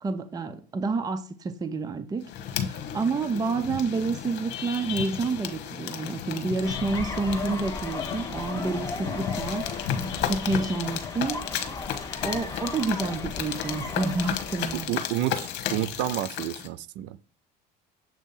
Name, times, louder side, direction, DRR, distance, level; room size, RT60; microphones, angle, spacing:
voice 1, 0.0-2.3 2.6-11.5 12.2-14.9, right 3 dB, 20° right, 0.6 m, -29 dB
sound 1, 2.2-16.7, left 9 dB, 65° left, 1.1 m, -34 dB
sound 2, 6.6-14.9, left 4 dB, 15° left, 1.5 m, -36 dB
voice 2, 14.9-17.2, right 13 dB, 70° right, 0.5 m, -30 dB
7.4 x 2.7 x 5.3 m
supercardioid pair, 110°, 19 cm